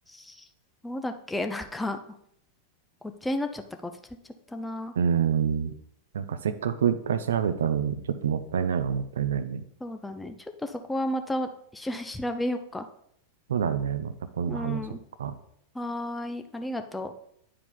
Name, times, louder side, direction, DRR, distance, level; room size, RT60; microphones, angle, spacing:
voice 1, 0.1-0.5 0.8-2.0 3.2-3.9 4.5-4.9 9.8-10.3 10.6-12.9 14.5-15.0 15.7-17.1, left 1 dB, 5° left, 6 dB, 0.6 m, -32 dB
voice 2, 5.0-5.7 6.1-8.0 8.2-9.7 13.5-14.8 15.2-15.3, right 8 dB, 65° right, 12 dB, 0.5 m, -27 dB
9.6 x 4.7 x 3.9 m, 0.71 s
figure-of-eight pair, 90°, 0 cm